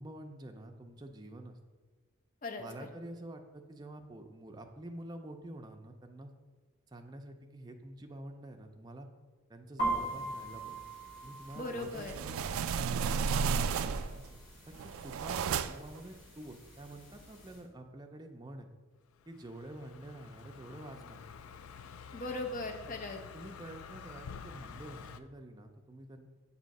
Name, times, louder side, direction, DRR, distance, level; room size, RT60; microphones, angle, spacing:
voice 1, 0.0-1.6 2.6-6.3 6.9-9.1 9.5-10.8 11.2-14.2 14.8-18.7 19.3-21.2 23.3-26.3, right 1 dB, 20° right, 4 dB, 0.4 m, -48 dB
voice 2, 2.4-2.9 11.5-12.2 22.1-23.2, left 2 dB, 40° left, 3 dB, 0.7 m, -39 dB
sound 1, 9.8-17.6, right 2 dB, 65° left, 1.6 m, -42 dB
sound 2, 11.8-14.3 14.7-16.0, right 6 dB, 85° right, 0.3 m, -33 dB
Car passing by, 19.2-25.2, left 6 dB, 85° left, 0.3 m, -49 dB
7.5 x 2.7 x 5.2 m, 1.4 s
head